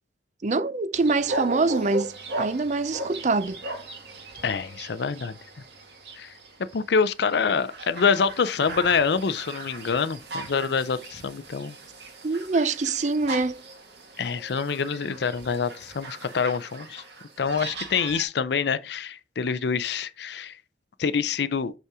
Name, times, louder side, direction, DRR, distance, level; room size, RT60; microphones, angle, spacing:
voice 1, 0.4-3.6 12.2-13.6, right 3 dB, 40° right, 0.5 m, -24 dB
Farm Sounds, 0.9-18.2, right 2 dB, 70° right, 2.0 m, -38 dB
voice 2, 4.4-5.4 6.2-6.3 6.7-11.7 14.2-17.0 17.4-20.5 21.0-21.7, left 5 dB, 65° left, 0.5 m, -26 dB
6.3 x 5.4 x 3.5 m
head